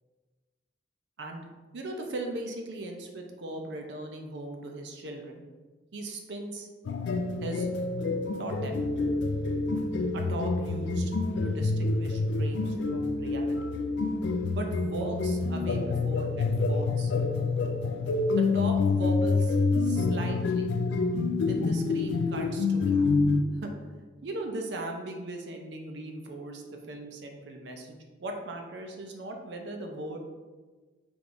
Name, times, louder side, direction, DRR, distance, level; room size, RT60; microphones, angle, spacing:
voice 1, 1.7-5.4 5.9-6.7 7.4-7.7 8.4-8.9 10.1-11.1 11.4-13.6 14.5-17.1 18.4-20.7 21.5-23.1 23.6-23.7 24.2-30.2, right 2 dB, 75° right, 3 dB, 0.5 m, -38 dB
sound 1, 6.9-23.4, left 3 dB, 75° left, 0.3 m, -27 dB
4.8 x 3.5 x 2.5 m, 1.3 s
head